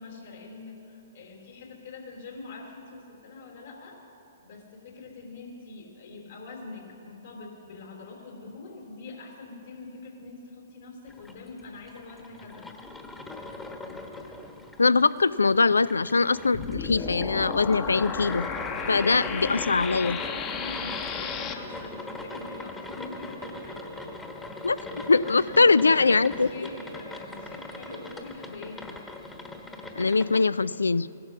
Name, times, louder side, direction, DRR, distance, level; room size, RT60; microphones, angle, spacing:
voice 1, 0.0-12.7 18.8-23.9 25.3-28.8, left 3 dB, 65° left, 1 dB, 3.6 m, -44 dB
sound 1, 11.1-30.5, left 2 dB, 10° left, 1.2 m, -41 dB
voice 2, 14.8-18.5 18.9-20.2 24.6-24.8 25.1-26.5 30.0-31.1, left 4 dB, 85° left, 19 dB, 0.3 m, -22 dB
sound 2, 16.5-21.5, left 6 dB, 30° left, 1.0 m, -33 dB
Telephone, 22.2-22.9 23.4-24.2 24.9-25.7 26.1-27.2 27.8-28.2, right 2 dB, 85° right, 0.6 m, -45 dB
16.0 x 12.0 x 6.1 m, 2.8 s
hypercardioid pair, 125°, 0 cm